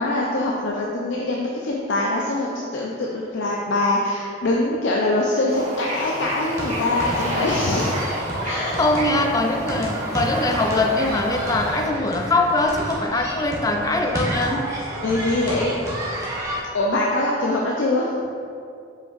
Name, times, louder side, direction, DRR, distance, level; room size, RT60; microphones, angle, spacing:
voice 1, 0.0-7.9 8.4-8.8 15.0-15.8 16.7-18.1, left 2 dB, 70° left, -2 dB, 0.5 m, -23 dB
Bird / Ocean, 5.5-11.9, equal, 35° right, 0.9 m, -31 dB
sound 1, 6.5-16.6, right 1 dB, 15° right, 1.1 m, -30 dB
voice 2, 8.8-14.7, left 2 dB, 20° left, 4 dB, 0.3 m, -22 dB
7.4 x 5.2 x 2.5 m, 2.4 s
head